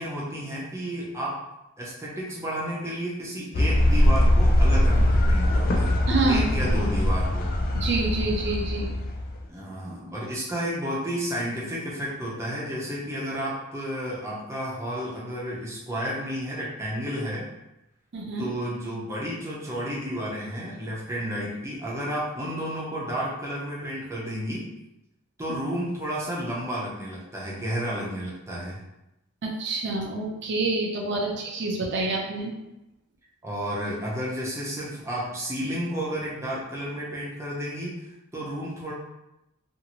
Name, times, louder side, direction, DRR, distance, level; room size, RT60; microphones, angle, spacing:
voice 1, 0.0-1.4 1.8-5.9 6.3-7.5 9.5-17.5 18.4-24.7 25.4-28.8 33.4-38.1 38.3-38.9, equal, 15° right, -5 dB, 0.7 m, -31 dB
sound 1, 3.5-9.4, left 1 dB, 40° left, 0.3 m, -22 dB
voice 2, 6.1-6.7 7.7-8.9 18.1-18.5 29.4-32.5, right 3 dB, 55° right, 0 dB, 0.5 m, -27 dB
2.6 x 2.5 x 2.9 m, 0.89 s
head